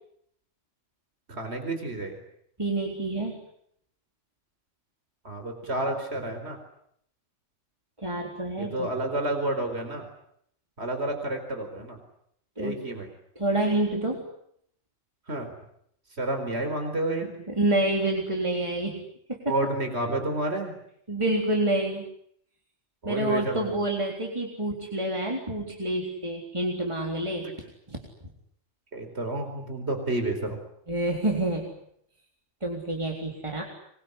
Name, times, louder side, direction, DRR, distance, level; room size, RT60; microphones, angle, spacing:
voice 1, 1.3-2.2 5.2-6.6 8.6-10.1 10.8-12.0 12.6-13.1 15.3-15.5 16.2-17.3 19.5-20.7 23.0-23.7 28.9-30.6, right 2 dB, 60° right, 6 dB, 4.8 m, -30 dB
voice 2, 2.6-3.4 8.0-8.9 12.6-12.8 13.4-14.3 17.2-19.4 21.1-22.0 23.1-27.5 27.9-28.1 30.9-31.7 32.6-33.6, right 1 dB, 25° right, 0 dB, 3.9 m, -28 dB
26.5 x 22.5 x 9.9 m, 0.71 s
omnidirectional pair, 1.3 m